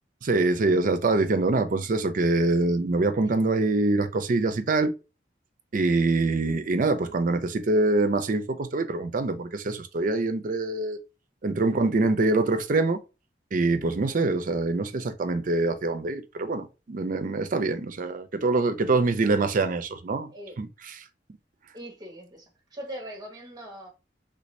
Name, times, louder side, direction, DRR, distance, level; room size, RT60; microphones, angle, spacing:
voice 1, 0.2-4.9 5.7-11.0 11.4-13.0 13.5-20.3 20.6-21.0, right 3 dB, 50° right, 0.5 m, -24 dB
voice 2, 21.7-23.9, right 1 dB, 20° right, 1.0 m, -41 dB
3.3 x 2.6 x 3.1 m
head